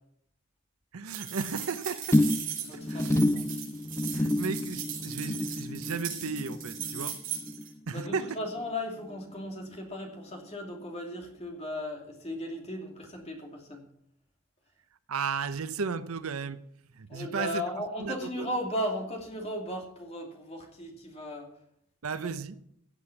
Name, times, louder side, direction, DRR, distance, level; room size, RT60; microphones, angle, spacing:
voice 1, 0.9-2.2 2.7-3.5 4.1-7.2 7.9-8.4 15.1-16.6 17.0-17.6 18.0-18.5 22.0-22.6, right 5 dB, 75° right, 0.7 m, -34 dB
sound 1, 1.1-7.7, right 9 dB, 35° right, 4.7 m, -38 dB
sound 2, 2.1-8.7 9.0-9.4 9.7-9.8, left 1 dB, 10° left, 0.4 m, -30 dB
voice 2, 2.6-3.5 7.9-13.9 17.1-21.5 22.1-22.3, left 1 dB, 30° left, 2.5 m, -36 dB
16.0 x 7.7 x 5.9 m
head